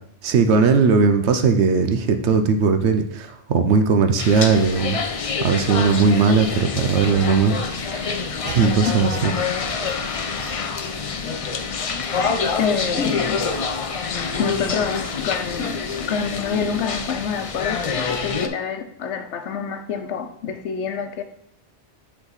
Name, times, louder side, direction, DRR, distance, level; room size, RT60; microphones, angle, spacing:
voice 1, 0.2-5.0 5.4-8.1 8.4-9.3, right 5 dB, 80° right, 7 dB, 1.0 m, -18 dB
sound 1, 4.2-18.5, left 5 dB, 45° left, 0.4 m, -26 dB
voice 2, 12.6-13.4 14.4-21.2, left 6 dB, 90° left, 8 dB, 1.0 m, -27 dB
9.7 x 3.6 x 4.0 m, 0.73 s
omnidirectional pair, 1.1 m